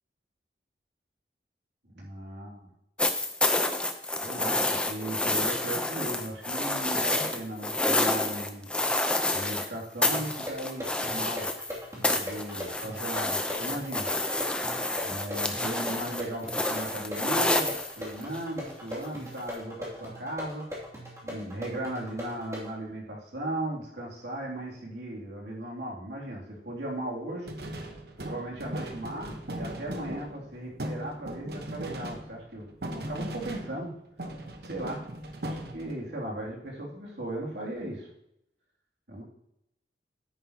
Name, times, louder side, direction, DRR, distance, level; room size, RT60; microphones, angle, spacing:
voice 1, 1.8-2.7 4.2-8.7 9.3-11.5 12.0-14.1 15.0-20.6 21.2-27.5 28.3-33.9 34.6-35.0 35.4-38.1 39.1-39.2, right 1 dB, 80° right, -3 dB, 2.7 m, -37 dB
sound 1, 3.0-9.7 10.0-11.7 12.0-18.4 19.5-19.6, left 2 dB, 5° left, 0.6 m, -28 dB
sound 2, 10.1-22.7, left 1 dB, 15° right, 2.6 m, -40 dB
sound 3, 27.5-33.9 34.2-36.1, right 1 dB, 60° right, 1.1 m, -38 dB
9.8 x 9.0 x 2.9 m, 0.78 s
head